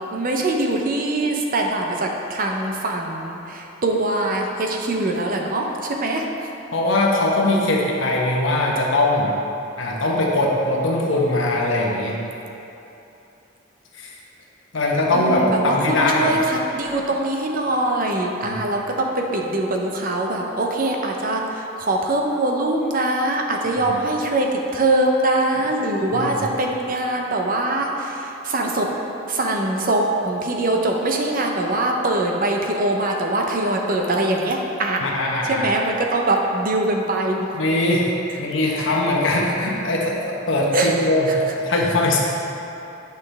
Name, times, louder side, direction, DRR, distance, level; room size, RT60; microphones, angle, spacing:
voice 1, 0.1-6.3 15.1-28.9 29.3-35.1 35.5-37.5 38.7-38.9 40.7-40.9, right 2 dB, 45° right, 1 dB, 0.7 m, -23 dB
voice 2, 6.7-9.3 9.8-12.2 14.0-14.1 14.7-16.4 18.4-18.6 23.9-24.0 26.1-26.5 35.0-35.7 37.5-38.1 38.4-42.2, left 1 dB, 70° left, -2 dB, 1.1 m, -21 dB
9.2 x 5.8 x 3.4 m, 3.0 s
head